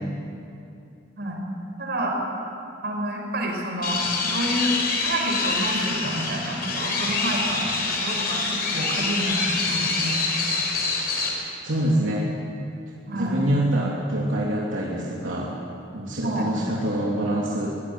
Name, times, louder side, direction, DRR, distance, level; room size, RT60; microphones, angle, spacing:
voice 1, 1.8-2.2 2.8-4.8 5.0-9.4 9.7-10.2 13.1-13.4 16.2-16.5, right 1 dB, 60° right, 1 dB, 5.5 m, -28 dB
sound 1, 3.8-11.3, left 3 dB, 55° left, 4.6 m, -26 dB
voice 2, 11.6-12.2 12.9-15.5 15.9-17.7, right 1 dB, 85° right, -5 dB, 3.2 m, -25 dB
23.0 x 16.0 x 9.5 m, 2.6 s
head